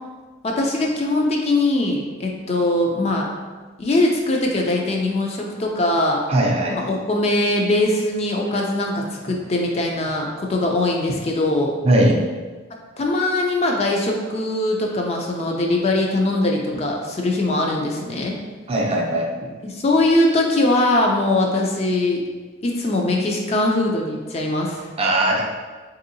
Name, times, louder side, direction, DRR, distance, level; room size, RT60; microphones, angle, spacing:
voice 1, 0.4-3.3 3.8-6.2 6.7-11.7 13.0-18.3 19.6-22.2 22.6-24.9, left 2 dB, 35° left, 0 dB, 0.4 m, -21 dB
voice 2, 6.3-6.8 11.8-12.2 18.7-19.5 25.0-25.4, right 1 dB, 30° right, -1 dB, 0.4 m, -19 dB
3.4 x 2.7 x 2.6 m, 1.4 s
head